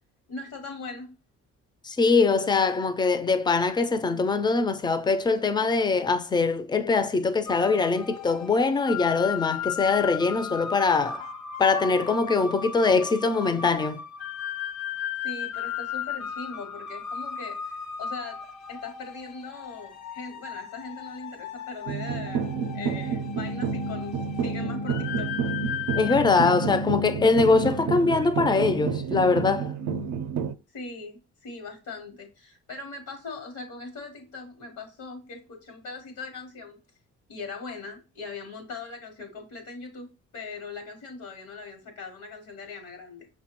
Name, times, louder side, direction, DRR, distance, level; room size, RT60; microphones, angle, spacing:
voice 1, 0.3-1.1 15.2-18.4 18.7-25.3 30.7-36.8 37.3-40.1 40.3-43.3, left 4 dB, 85° left, 1.0 m, -40 dB
voice 2, 1.8-11.2 11.6-14.0 26.0-29.7, left 4 dB, 15° left, 0.3 m, -23 dB
sound 1, 7.5-26.2, left 7 dB, 65° left, 0.5 m, -36 dB
sound 2, 21.9-30.5, right 5 dB, 65° right, 0.4 m, -30 dB
5.6 x 2.1 x 2.9 m
cardioid pair, 90°, 30 cm